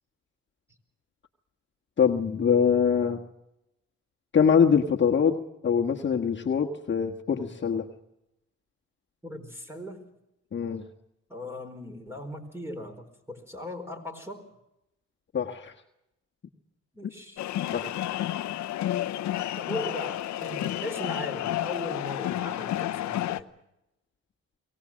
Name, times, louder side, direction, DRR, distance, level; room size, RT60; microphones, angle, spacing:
voice 1, 2.0-3.2 4.3-7.9 10.5-10.8 15.3-15.7 17.0-17.1 17.7-17.9, left 7 dB, 40° left, 1 dB, 1.5 m, -24 dB
voice 2, 9.2-10.0 11.3-14.5 16.9-17.4 19.3-23.5, left 1 dB, 10° right, 6 dB, 4.4 m, -38 dB
sound 1, 17.4-23.4, left 13 dB, 65° left, 0.8 m, -31 dB
23.5 x 18.5 x 7.5 m, 0.88 s
cardioid pair, 90°, 30 cm